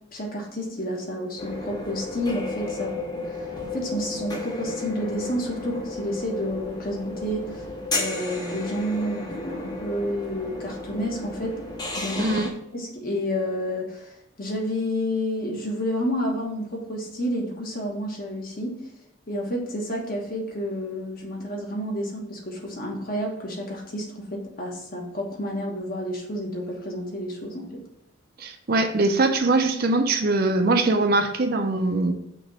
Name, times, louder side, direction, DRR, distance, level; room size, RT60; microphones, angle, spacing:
voice 1, 0.1-2.9 3.2-7.6 7.9-11.6 12.0-12.3 12.7-18.7 19.3-27.8, equal, 45° left, 0 dB, 1.2 m, -30 dB
sound 1, 1.4-12.5, left 2 dB, 20° left, 0.8 m, -33 dB
voice 2, 12.2-12.5 28.4-32.1, right 2 dB, 45° right, 6 dB, 0.5 m, -22 dB
6.1 x 3.0 x 5.3 m, 0.81 s
head